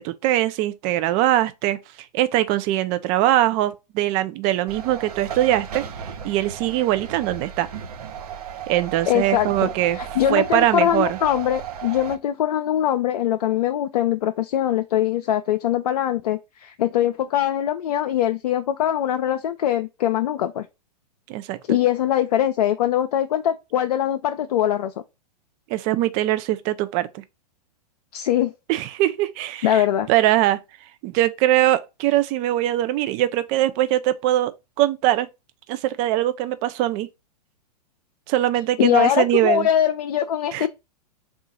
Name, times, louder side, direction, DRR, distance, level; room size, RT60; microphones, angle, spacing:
voice 1, 0.0-1.8 2.1-7.7 8.7-10.0 10.3-11.2 21.3-21.8 25.7-27.2 28.7-29.8 30.1-30.6 31.0-34.5 34.8-35.3 35.7-37.1 38.3-39.7 40.5-40.7, right 14 dB, 35° right, 0.5 m, -22 dB
sound 1, 4.7-12.2, right 8 dB, 65° right, 0.7 m, -35 dB
voice 2, 9.1-9.7 9.9-20.7 21.7-24.9 28.1-28.5 29.6-30.1 38.8-40.7, left 11 dB, 65° left, 0.4 m, -22 dB
3.7 x 2.4 x 4.1 m
hypercardioid pair, 110°, 21 cm